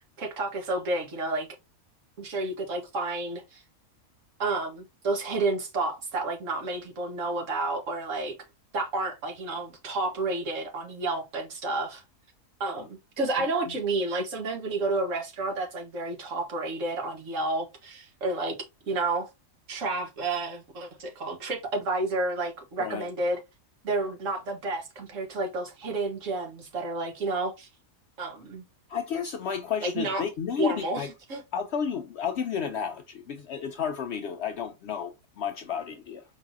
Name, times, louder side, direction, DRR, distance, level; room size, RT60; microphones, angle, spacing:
voice 1, 0.2-1.5 2.2-3.6 4.4-8.4 8.7-12.0 12.6-19.3 19.7-23.4 23.8-27.7 28.2-28.6 29.8-30.2 30.6-31.4, right 2 dB, 60° right, 1.5 m, -30 dB
voice 2, 13.4-13.8 22.8-23.1 28.9-31.1 31.5-36.2, left 7 dB, 65° left, 0.7 m, -32 dB
4.7 x 3.9 x 2.5 m
omnidirectional pair, 1.5 m